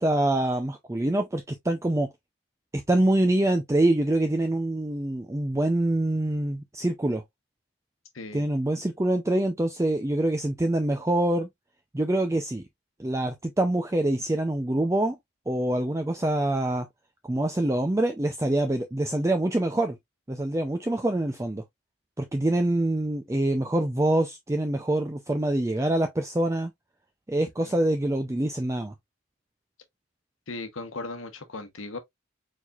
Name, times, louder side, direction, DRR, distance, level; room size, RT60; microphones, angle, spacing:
voice 1, 0.0-2.1 2.9-7.2 8.3-11.5 11.9-12.6 13.0-15.2 15.5-16.9 17.2-20.0 20.3-21.6 22.2-26.7 27.3-28.9, right 1 dB, 15° right, 0.4 m, -25 dB
voice 2, 30.5-32.0, left 3 dB, 75° left, 1.0 m, -37 dB
4.5 x 4.1 x 2.4 m
head